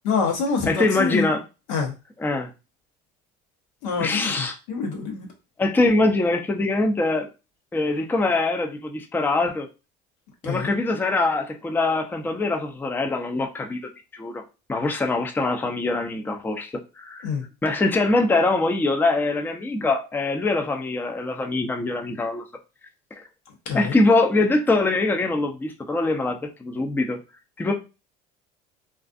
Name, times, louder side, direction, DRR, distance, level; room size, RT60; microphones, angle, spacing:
voice 1, 0.0-1.3 1.7-1.9 3.8-5.3 10.4-10.7 17.2-17.4 23.7-24.0, left 5 dB, 85° left, 0.8 m, -26 dB
voice 2, 0.7-1.4 2.2-2.5 4.0-4.5 5.6-7.3 7.7-9.7 10.4-13.8 14.1-14.4 14.7-17.3 17.6-22.4 23.1-23.2 23.7-27.2 27.6-27.7, left 2 dB, 10° left, 0.4 m, -23 dB
2.4 x 2.4 x 2.5 m
supercardioid pair, 90°, 21 cm